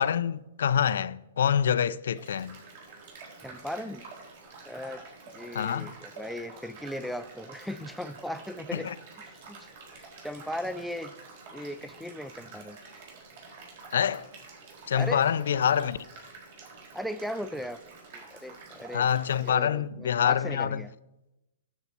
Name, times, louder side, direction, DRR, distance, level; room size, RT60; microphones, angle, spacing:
voice 1, 0.0-2.6 5.5-5.9 8.7-8.9 13.9-14.3 14.9-16.0 18.9-20.8, left 8 dB, 75° left, 0.4 m, -26 dB
sound 1, 2.2-19.5, right 3 dB, 55° right, 4.3 m, -48 dB
voice 2, 3.4-4.0 4.7-5.0 5.3-8.9 9.2-9.7 9.9-11.1 11.5-12.8 14.9-15.2 16.9-17.8 18.1-19.2 19.4-20.9, left 1 dB, ahead, 0.4 m, -37 dB
9.9 x 8.2 x 4.4 m
hypercardioid pair, 145°, 0 cm